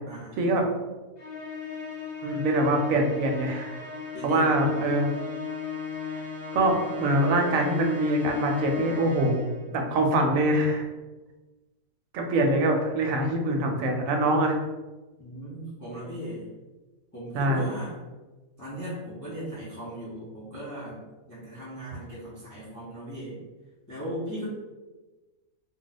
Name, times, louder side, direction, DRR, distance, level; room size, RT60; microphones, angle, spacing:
voice 1, 0.1-0.7 4.1-4.5 15.2-16.5 17.1-18.0 18.6-21.0 21.3-23.3 23.9-24.5, equal, 25° left, -10 dB, 0.4 m, -38 dB
Musical instrument, 1.2-9.7, left 5 dB, 50° left, 0.9 m, -36 dB
voice 2, 2.2-3.8 4.2-5.1 6.1-6.2 6.5-9.4 9.7-10.9 12.1-14.6 17.3-17.7, right 1 dB, 75° right, 2 dB, 0.9 m, -24 dB
2.3 x 2.2 x 4.0 m, 1.2 s
omnidirectional pair, 1.5 m